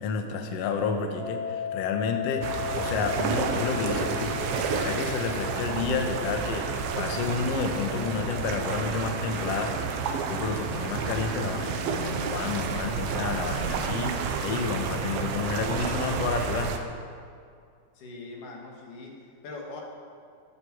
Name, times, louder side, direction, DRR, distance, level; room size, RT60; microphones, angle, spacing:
voice 1, 0.0-2.5 2.8-16.7, left 5 dB, 85° left, 5 dB, 1.4 m, -30 dB
sound 1, 1.2-12.1, left 10 dB, 55° right, 2.5 m, -38 dB
sound 2, 2.4-16.8, right 6 dB, 75° right, 2.6 m, -30 dB
voice 2, 18.0-19.1 19.4-19.8, left 3 dB, 55° left, -1 dB, 3.6 m, -41 dB
15.0 x 14.5 x 4.9 m, 2.3 s
omnidirectional pair, 4.6 m